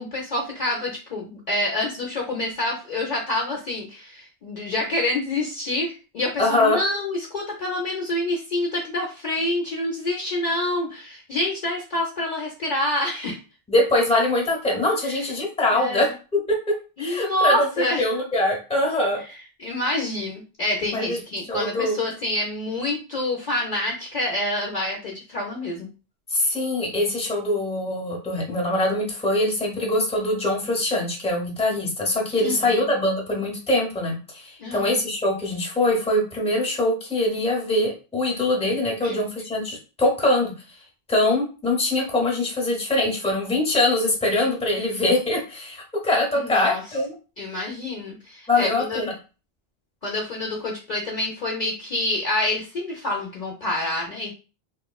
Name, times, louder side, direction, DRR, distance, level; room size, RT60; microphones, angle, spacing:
voice 1, 0.0-13.4 15.0-15.2 15.7-16.1 17.0-18.1 19.3-25.9 32.4-32.9 34.6-35.0 39.0-39.1 46.3-46.8 47.4-49.0 50.0-54.3, left 1 dB, 55° left, -1 dB, 0.6 m, -27 dB
voice 2, 6.4-6.8 13.7-16.1 17.0-19.2 20.9-21.2 21.5-22.0 26.3-40.5 41.1-47.2 48.5-49.1, left 1 dB, 5° left, -1 dB, 0.6 m, -23 dB
2.9 x 2.1 x 2.2 m, 0.33 s
omnidirectional pair, 1.0 m